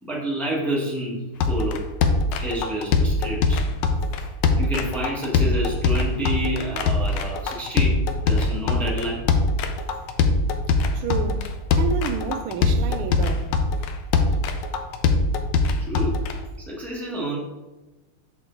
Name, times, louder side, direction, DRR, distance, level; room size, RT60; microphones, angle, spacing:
voice 1, 0.0-1.9 2.4-3.7 4.6-9.3 15.8-16.2 16.6-17.4, right 1 dB, ahead, 1.1 m, -29 dB
sound 1, 1.4-16.3, left 3 dB, 70° left, 1.1 m, -22 dB
voice 2, 10.9-13.6, right 6 dB, 85° right, 1.5 m, -30 dB
6.1 x 5.1 x 3.8 m
omnidirectional pair, 2.4 m